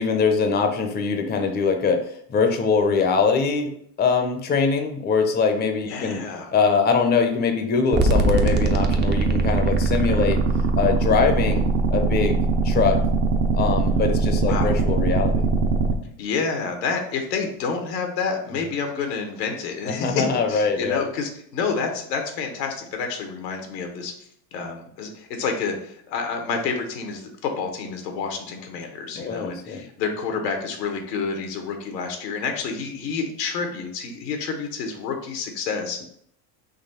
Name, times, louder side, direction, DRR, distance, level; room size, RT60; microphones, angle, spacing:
voice 1, 0.0-3.7 4.0-6.2 6.5-10.4 10.8-12.4 12.6-13.0 13.6-15.4 19.9-21.0 29.1-29.8, left 5 dB, 20° left, 5 dB, 0.6 m, -22 dB
voice 2, 5.9-6.5 14.5-14.8 16.2-24.1 24.5-36.0, left 5 dB, 85° left, 3 dB, 1.1 m, -29 dB
sound 1, 7.9-15.9, right 3 dB, 20° right, 0.5 m, -21 dB
4.1 x 3.0 x 4.2 m, 0.69 s
supercardioid pair, 95°, 49 cm